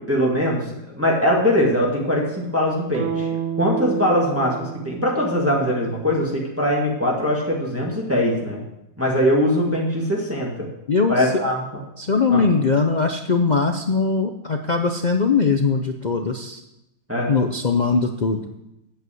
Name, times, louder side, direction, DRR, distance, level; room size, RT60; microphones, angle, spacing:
voice 1, 0.1-3.3 3.6-8.6 9.0-10.7 11.1-11.8 12.3-12.4 17.1-17.3, equal, 10° right, -3 dB, 2.1 m, -21 dB
sound 1, 2.9-7.0, right 8 dB, 55° right, 1.4 m, -31 dB
voice 2, 10.9-11.3 12.0-16.6 17.3-18.4, left 4 dB, 55° left, 5 dB, 0.5 m, -21 dB
8.4 x 8.0 x 7.8 m, 0.89 s
omnidirectional pair, 1.7 m